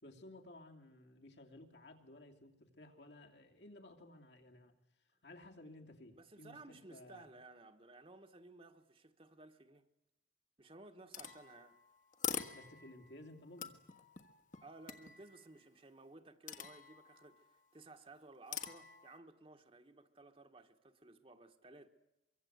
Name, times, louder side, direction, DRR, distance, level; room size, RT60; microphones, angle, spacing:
voice 1, 0.0-4.7 5.2-7.3 12.5-13.8, left 1 dB, 70° left, 2.9 m, -56 dB
voice 2, 6.1-9.9 10.6-11.8 14.6-21.9, right 2 dB, 30° right, 1.5 m, -57 dB
sound 1, 11.1-13.1 13.6-15.4 16.5-17.4 18.5-19.2, left 7 dB, 45° left, 1.6 m, -45 dB
24.0 x 23.5 x 8.1 m
head